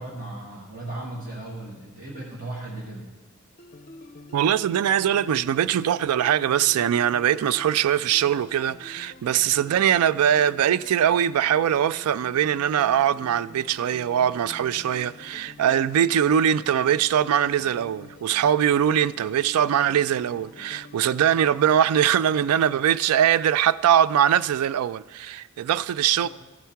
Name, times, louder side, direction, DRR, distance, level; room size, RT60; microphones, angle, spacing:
voice 1, 0.0-3.1 9.3-9.4 26.2-26.3, right 2 dB, 40° right, 1.6 m, -36 dB
sound 1, 3.6-21.7, left 2 dB, 40° left, 0.5 m, -47 dB
voice 2, 4.3-26.3, right 9 dB, 85° right, 0.3 m, -22 dB
13.0 x 4.6 x 5.7 m
head